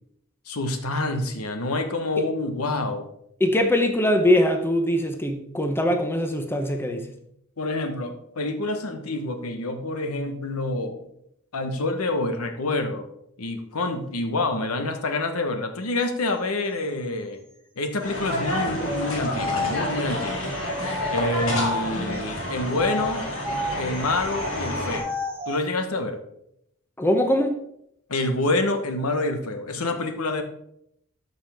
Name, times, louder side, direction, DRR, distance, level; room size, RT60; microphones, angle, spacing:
voice 1, 0.5-3.1 7.6-11.0 11.5-13.1 13.4-17.4 17.8-20.5 21.1-23.3 23.8-25.1 25.5-26.2 28.1-30.4, left 2 dB, 85° left, 6 dB, 1.1 m, -27 dB
voice 2, 3.4-7.1 27.0-27.5, left 1 dB, 10° left, 5 dB, 0.7 m, -22 dB
sound 1, 18.0-25.0, left 1 dB, 65° left, 2.3 m, -29 dB
sound 2, 18.8-22.2 22.7-25.6, left 2 dB, 10° right, 1.1 m, -32 dB
13.0 x 5.4 x 3.5 m, 0.75 s
head